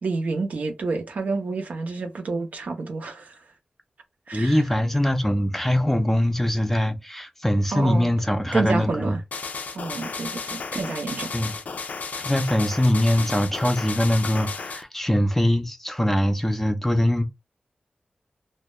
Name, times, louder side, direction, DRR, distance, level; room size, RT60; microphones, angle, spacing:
voice 1, 0.0-3.4 4.3-4.6 7.7-8.1 8.5-9.2 9.7-11.3, right 3 dB, 80° right, 0.5 m, -29 dB
voice 2, 4.3-9.2 11.3-11.5 12.2-17.2, left 1 dB, 10° left, 0.4 m, -22 dB
sound 1, 9.3-14.8, left 4 dB, 85° left, 0.4 m, -33 dB
2.2 x 2.1 x 2.9 m
wide cardioid pair, 95°, 3 cm